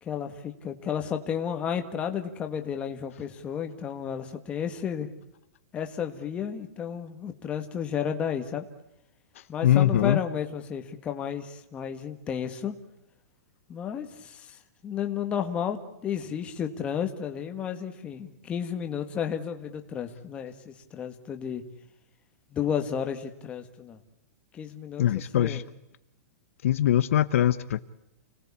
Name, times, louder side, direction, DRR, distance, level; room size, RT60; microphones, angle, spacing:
voice 1, 0.0-5.1 5.7-8.6 9.5-12.7 13.7-14.6 14.8-21.6 22.5-24.0 24.5-25.6, left 8 dB, 15° left, 1.7 m, -32 dB
voice 2, 9.6-10.2 25.0-25.6 26.6-27.8, left 11 dB, 55° left, 1.0 m, -22 dB
29.5 x 19.5 x 8.6 m
supercardioid pair, 175°, 9 cm